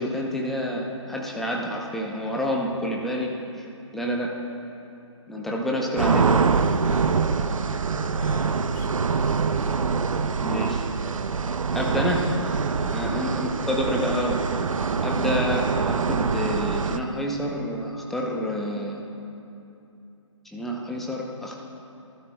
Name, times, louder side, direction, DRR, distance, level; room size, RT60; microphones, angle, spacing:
voice 1, 0.0-3.3 3.9-4.3 5.3-6.4 7.7-7.8 10.4-10.8 11.7-12.3 12.9-14.4 15.0-19.1 20.4-21.6, equal, ahead, -2 dB, 0.7 m, -28 dB
voice 2, 2.6-2.9 8.2-9.6 12.9-13.4, left 5 dB, 30° left, 3 dB, 0.9 m, -44 dB
sound 1, 6.0-17.0, right 5 dB, 85° right, 0.6 m, -24 dB
19.0 x 12.0 x 2.3 m, 2.8 s
hypercardioid pair, 150°, 17 cm